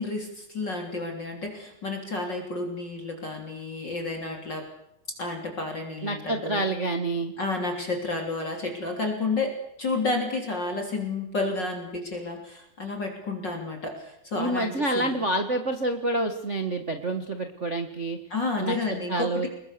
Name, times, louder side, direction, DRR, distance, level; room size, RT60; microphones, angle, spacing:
voice 1, 0.0-4.6 5.2-6.6 7.4-9.5 9.8-15.1 18.3-19.5, left 3 dB, 30° left, 2 dB, 3.6 m, -31 dB
voice 2, 6.0-7.3 14.3-18.2 18.6-18.7 19.1-19.5, right 2 dB, 65° right, 5 dB, 0.7 m, -28 dB
28.0 x 21.5 x 6.8 m, 0.80 s
omnidirectional pair, 4.0 m